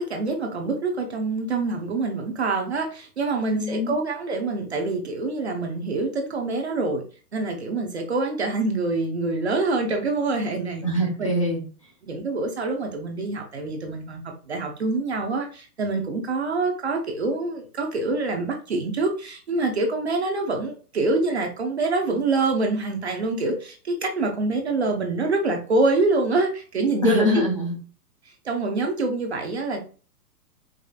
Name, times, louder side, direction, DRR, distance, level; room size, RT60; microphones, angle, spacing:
voice 1, 0.0-7.0 7.3-10.8 11.2-11.3 12.0-14.2 14.5-27.4 28.4-29.8, right 3 dB, 45° right, 3 dB, 0.6 m, -25 dB
voice 2, 3.5-3.9 10.8-11.6 27.0-27.7, left 1 dB, 20° left, -1 dB, 0.6 m, -23 dB
4.8 x 2.4 x 2.3 m, 0.37 s
hypercardioid pair, 180°, 48 cm